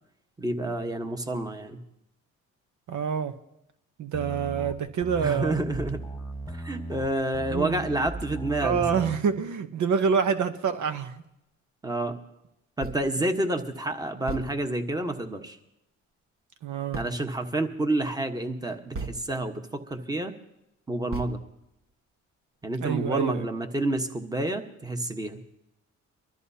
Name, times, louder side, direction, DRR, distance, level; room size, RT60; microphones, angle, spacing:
voice 1, 0.4-1.8 5.2-6.0 6.5-9.0 11.8-12.2 12.8-15.6 16.9-20.3 20.9-21.4 22.6-25.4, right 1 dB, 10° right, 6 dB, 1.2 m, -29 dB
voice 2, 2.9-3.3 4.0-5.6 7.5-7.8 8.6-11.2 16.6-17.0 22.8-23.5, right 6 dB, 75° right, 9 dB, 0.9 m, -27 dB
sound 1, 4.1-9.2, right 1 dB, 5° left, 1.4 m, -37 dB
sound 2, 12.8-13.2 13.7-13.8 14.3-15.0 16.9-17.4 18.9-19.6 20.1-20.2 21.1-21.9, right 3 dB, 45° right, 1.6 m, -38 dB
23.5 x 13.0 x 2.8 m, 0.84 s
cardioid pair, 90°, 30 cm